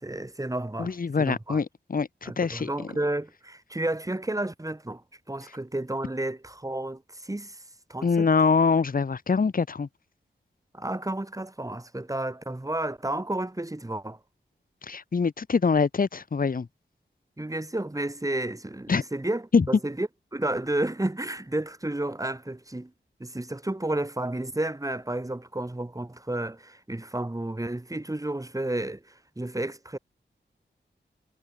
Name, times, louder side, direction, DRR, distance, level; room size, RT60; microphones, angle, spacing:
voice 1, 0.0-1.6 2.2-5.0 5.3-7.6 7.9-8.3 10.7-14.2 17.4-22.9 23.2-30.0, right 1 dB, 15° right, 1.7 m, -31 dB
voice 2, 0.8-2.7 8.0-9.9 14.8-16.7 18.9-19.0 19.5-19.7, left 5 dB, 50° left, 0.9 m, -24 dB
cardioid pair, 45°, 19 cm